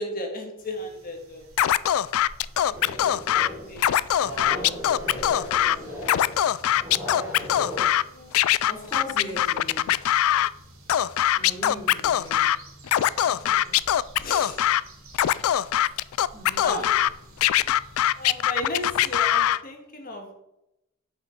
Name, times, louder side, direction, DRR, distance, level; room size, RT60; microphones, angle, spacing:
voice 1, 0.0-1.5 2.6-4.8 5.8-6.1 8.1-8.3 13.3-13.8 14.2-14.6 16.6-17.1 18.1-20.3, left 1 dB, 45° left, 3 dB, 1.7 m, -36 dB
sound 1, 0.6-19.5, right 1 dB, 75° right, 2.5 m, -50 dB
Scratching (performance technique), 1.6-3.5 3.8-5.8 6.0-8.0 8.3-10.5 10.9-12.6 12.9-14.8 15.1-17.1 17.4-19.6, left 12 dB, 80° left, 0.3 m, -22 dB
sound 2, 2.7-7.9, left 1 dB, 10° right, 3.7 m, -37 dB
voice 2, 8.6-9.9 11.3-12.5 16.3-16.9 18.6-18.7, equal, 20° left, -3 dB, 3.3 m, -39 dB
9.1 x 5.5 x 5.8 m, 0.87 s
head